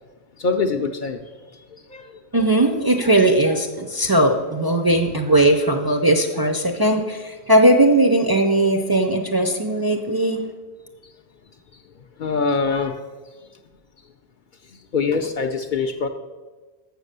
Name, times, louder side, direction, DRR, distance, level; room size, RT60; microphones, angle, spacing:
voice 1, 0.4-1.2 1.5-2.2 12.2-13.0 14.7-16.1, left 4 dB, 60° left, 0.6 m, -24 dB
voice 2, 2.3-10.4, right 1 dB, 30° right, 0.5 m, -18 dB
7.1 x 6.5 x 6.6 m
omnidirectional pair, 1.1 m